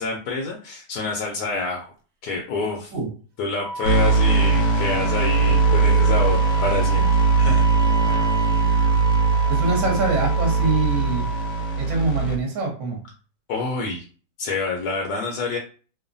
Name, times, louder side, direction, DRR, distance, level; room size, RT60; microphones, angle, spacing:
voice 1, 0.0-1.9 2.2-2.9 3.4-7.9 13.5-14.0 14.4-15.6, left 3 dB, 80° left, 0 dB, 1.2 m, -27 dB
Wind instrument woodwind instrument, 3.6-11.8, right 3 dB, 75° right, 1.2 m, -31 dB
sound 1, 3.8-12.4, right 4 dB, 65° left, 0.9 m, -20 dB
voice 2, 9.5-11.3 11.8-13.0, right 3 dB, 55° right, 0 dB, 1.2 m, -24 dB
3.1 x 2.1 x 2.5 m, 0.38 s
omnidirectional pair, 1.8 m